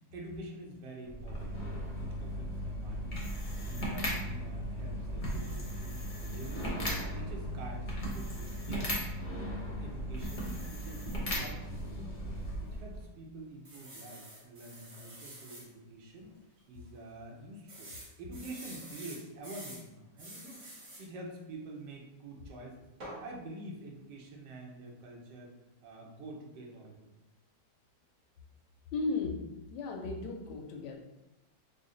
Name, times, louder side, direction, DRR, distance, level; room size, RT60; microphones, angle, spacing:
voice 1, 0.1-3.2 3.6-6.8 7.1-9.1 9.6-12.3 12.6-16.3 16.7-20.6 21.0-25.5 25.8-27.1, right 2 dB, 75° right, -1 dB, 1.3 m, -47 dB
sound 1, 1.1-13.0, equal, 40° left, 0.7 m, -37 dB
sound 2, 13.6-15.7 16.2-16.3 16.6-16.7 17.7-19.8 20.2-21.1 23.0-23.2, right 1 dB, 45° right, 1.4 m, -48 dB
voice 2, 28.9-29.4 29.7-31.0, left 3 dB, 75° left, 1 dB, 1.2 m, -35 dB
3.8 x 2.1 x 3.7 m, 0.96 s
omnidirectional pair, 1.9 m